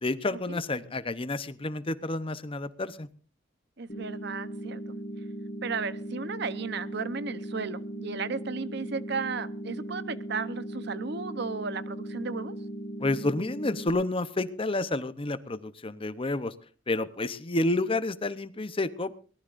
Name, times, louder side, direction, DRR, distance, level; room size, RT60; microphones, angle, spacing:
voice 1, 0.0-3.1 13.0-16.5 16.9-19.1, left 2 dB, 30° left, 0.8 m, -30 dB
voice 2, 3.8-5.0 5.6-12.5, right 4 dB, 60° right, 0.9 m, -34 dB
sound 1, 3.9-13.9, right 1 dB, 45° left, 1.9 m, -38 dB
22.5 x 18.5 x 2.6 m
head